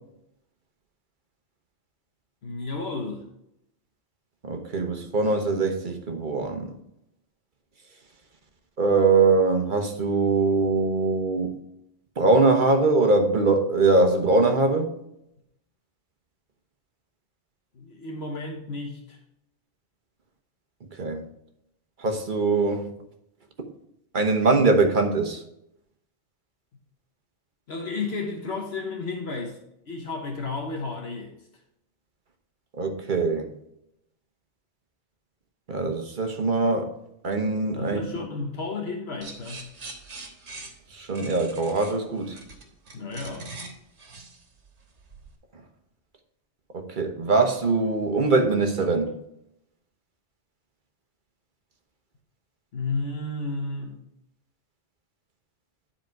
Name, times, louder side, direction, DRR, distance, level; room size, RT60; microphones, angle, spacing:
voice 1, 2.4-3.2 17.7-19.2 27.7-29.6 29.9-31.3 37.8-39.7 42.9-43.5 52.7-54.0, left 3 dB, 65° left, 2 dB, 1.3 m, -32 dB
voice 2, 4.5-6.7 8.8-11.5 12.2-15.0 21.0-21.2 22.0-22.9 24.1-25.4 32.8-33.5 35.7-36.9 37.2-38.0 40.9-42.4 46.7-49.1, right 3 dB, 45° right, 5 dB, 1.2 m, -22 dB
sound 1, 39.2-45.3, right 3 dB, 75° right, 1.7 m, -43 dB
10.5 x 4.4 x 4.6 m, 0.78 s
omnidirectional pair, 1.2 m